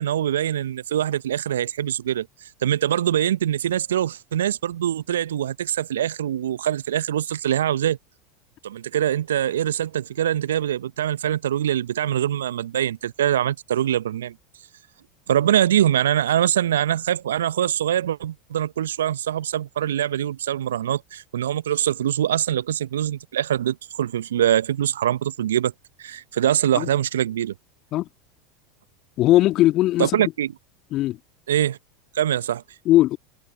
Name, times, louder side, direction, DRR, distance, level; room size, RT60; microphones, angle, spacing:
voice 1, 0.0-2.3 2.6-8.0 8.6-14.3 15.3-25.7 26.0-27.5 30.0-30.5 31.5-31.8 32.1-32.6, right 11 dB, 75° right, 0.8 m, -23 dB
voice 2, 29.2-30.3 30.9-31.2 32.9-33.2, left 15 dB, 45° left, 2.3 m, -19 dB
figure-of-eight pair, 80°, 0 cm